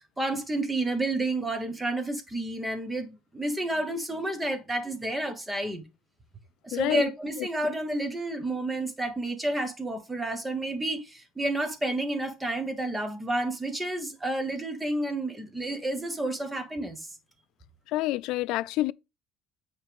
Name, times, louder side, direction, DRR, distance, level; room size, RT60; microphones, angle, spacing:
voice 1, 0.2-5.8 6.6-17.1, right 1 dB, 10° right, 1.2 m, -30 dB
voice 2, 6.7-7.1 7.4-7.5 17.9-18.9, left 16 dB, 65° left, 0.3 m, -27 dB
8.7 x 3.3 x 5.2 m
cardioid pair, 160°, 0 cm